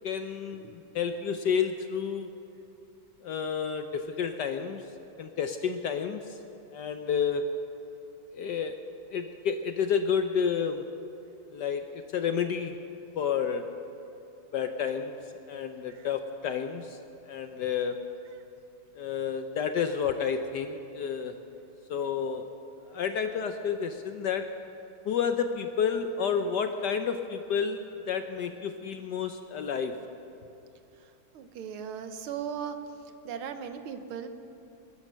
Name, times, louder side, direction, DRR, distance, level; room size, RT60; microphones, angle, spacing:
voice 1, 0.0-2.3 3.2-4.8 5.2-6.4 6.7-7.5 8.3-8.8 9.1-10.8 11.5-12.8 13.2-13.6 14.5-15.2 15.5-17.0 17.3-18.0 18.9-21.4 21.9-22.5 22.8-24.5 25.0-30.0, left 7 dB, 70° left, 7 dB, 1.0 m, -30 dB
voice 2, 31.3-32.8 33.2-34.3, right 8 dB, 75° right, 8 dB, 1.8 m, -37 dB
20.5 x 11.0 x 6.2 m, 2.8 s
omnidirectional pair, 2.4 m